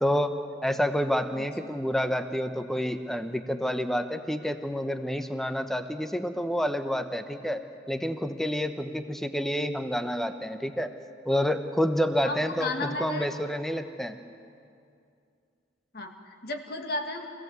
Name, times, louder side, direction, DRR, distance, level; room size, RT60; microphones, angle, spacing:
voice 1, 0.0-7.6 7.9-10.9 11.2-14.2, equal, ahead, 8 dB, 0.9 m, -28 dB
voice 2, 12.2-13.3 15.9-17.3, left 2 dB, 55° left, 3 dB, 1.9 m, -34 dB
24.5 x 16.5 x 8.1 m, 2.4 s
head